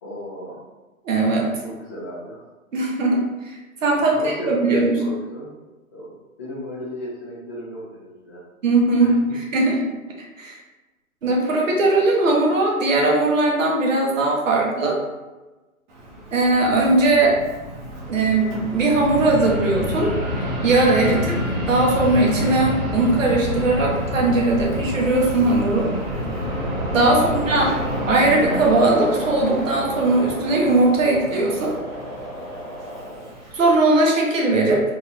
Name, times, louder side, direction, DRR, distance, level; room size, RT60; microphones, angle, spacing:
voice 1, 0.0-0.6 1.6-2.4 3.9-5.4 5.9-6.1 6.4-8.4 9.0-9.2 16.2-16.4 21.3-21.4 27.0-27.4 33.0-33.3, equal, 10° left, -8 dB, 0.5 m, -34 dB
voice 2, 1.0-1.5 2.7-4.9 8.6-9.8 10.4-10.6 11.2-15.0 16.3-17.3 18.1-20.2 20.6-21.4 21.7-25.9 26.9-27.7 28.1-31.7 33.5-34.8, right 2 dB, 60° right, -1 dB, 1.3 m, -19 dB
Fixed-wing aircraft airplane, 15.9-33.7, equal, 35° right, 1.2 m, -29 dB
sound 1, 25.7-33.4, equal, 15° right, 1.5 m, -33 dB
4.0 x 3.4 x 2.4 m, 1.1 s
hypercardioid pair, 155°, 43 cm